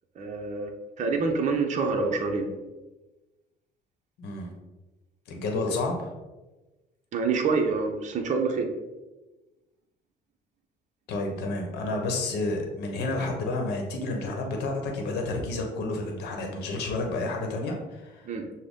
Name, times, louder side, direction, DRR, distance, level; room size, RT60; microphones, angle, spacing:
voice 1, 0.2-0.7 1.0-2.5 7.1-8.7 18.2-18.5, right 4 dB, 45° right, 3 dB, 0.7 m, -26 dB
voice 2, 4.2-4.5 5.3-6.1 11.1-18.3, left 2 dB, 80° left, 2 dB, 0.9 m, -30 dB
6.2 x 2.1 x 3.6 m, 1.1 s
cardioid pair, 110°, 17 cm